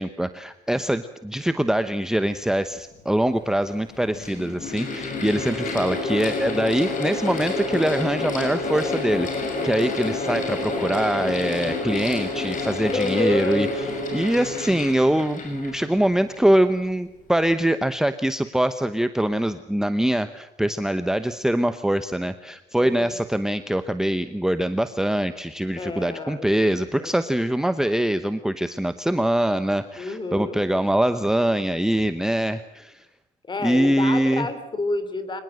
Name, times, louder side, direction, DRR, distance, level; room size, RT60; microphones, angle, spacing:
voice 1, 0.0-33.1 33.6-34.5, right 1 dB, 5° right, 10 dB, 0.9 m, -23 dB
Mechanical fan, 2.9-3.0 3.9-16.5, left 2 dB, 50° left, 6.6 m, -29 dB
voice 2, 12.9-13.7 22.8-23.1 25.8-26.6 27.0-27.1 30.0-30.6 33.5-35.4, left 3 dB, 25° left, 11 dB, 3.2 m, -29 dB
24.5 x 20.5 x 7.8 m, 0.89 s
cardioid pair, 110°, 17 cm